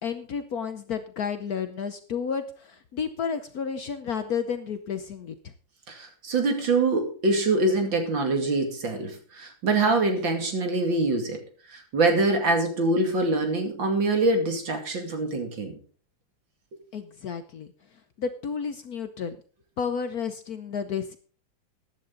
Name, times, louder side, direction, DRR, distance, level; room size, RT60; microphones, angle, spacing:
voice 1, 0.0-5.5 16.9-17.7 18.2-19.4 19.8-21.2, left 6 dB, 60° left, 9 dB, 1.1 m, -31 dB
voice 2, 5.9-11.4 11.7-15.8, right 2 dB, 65° right, 4 dB, 3.0 m, -24 dB
14.5 x 10.5 x 3.9 m, 0.40 s
omnidirectional pair, 2.2 m